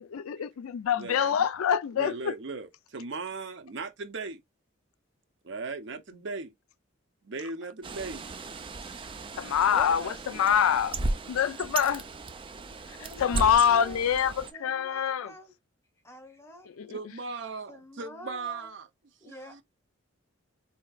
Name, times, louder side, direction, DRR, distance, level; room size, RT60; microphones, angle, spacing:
voice 1, 0.1-2.3 9.4-10.9 11.3-12.0 13.2-15.3 16.7-17.0, left 8 dB, 80° left, 0.4 m, -25 dB
voice 2, 1.0-1.5 1.9-4.4 5.4-6.5 7.2-8.2 12.6-13.0 16.9-18.9 19.2-19.6, right 4 dB, 55° right, 0.6 m, -38 dB
Bird, 7.8-14.5, right 2 dB, 25° right, 0.3 m, -36 dB
voice 3, 9.7-10.9 13.0-14.0 14.5-15.5 16.0-17.0 17.7-18.7 19.2-19.6, left 1 dB, 10° left, 0.8 m, -46 dB
4.3 x 2.8 x 2.3 m
head